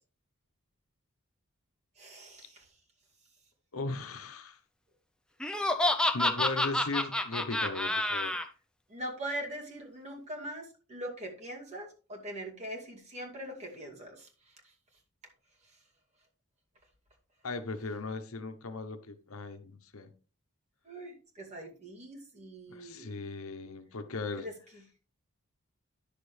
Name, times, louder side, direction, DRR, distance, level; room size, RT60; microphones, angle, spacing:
voice 1, 2.0-2.6 8.9-14.3 20.8-23.1 24.4-24.5, right 1 dB, 30° right, 2.4 m, -42 dB
voice 2, 3.7-4.6 6.1-8.3 17.4-20.1 22.7-24.5, left 3 dB, 80° left, 1.0 m, -38 dB
Laughter, 5.4-8.4, left 1 dB, 5° left, 0.6 m, -28 dB
10.5 x 6.7 x 3.3 m
head